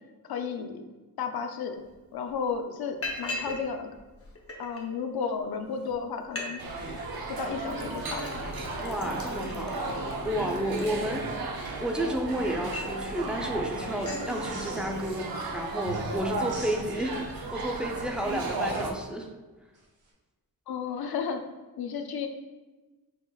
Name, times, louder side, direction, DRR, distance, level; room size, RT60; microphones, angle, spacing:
voice 1, 0.3-0.8 1.2-1.8 2.1-3.9 4.6-6.6 7.4-8.4 20.7-21.4 21.8-22.3, left 6 dB, 90° left, 6 dB, 0.6 m, -33 dB
Liquid, 1.9-2.0 2.3-2.5 3.0-3.6 3.9-4.8 5.5-5.6 5.9-6.0 6.2-6.5 6.8-7.2 7.7-11.5 12.0-13.0 13.4-13.6 13.8-14.3, left 2 dB, 40° left, 0.8 m, -40 dB
sound 1, 6.6-18.9, right 2 dB, 75° right, 0.7 m, -34 dB
voice 2, 8.8-9.8 10.2-17.2 17.5-19.3, equal, 5° right, 1 dB, 0.5 m, -31 dB
sound 2, 14.2-15.4 15.8-17.2 19.7-20.1, right 3 dB, 55° right, 1.1 m, -48 dB
6.0 x 3.8 x 2.3 m, 1.2 s
wide cardioid pair, 130°, 36 cm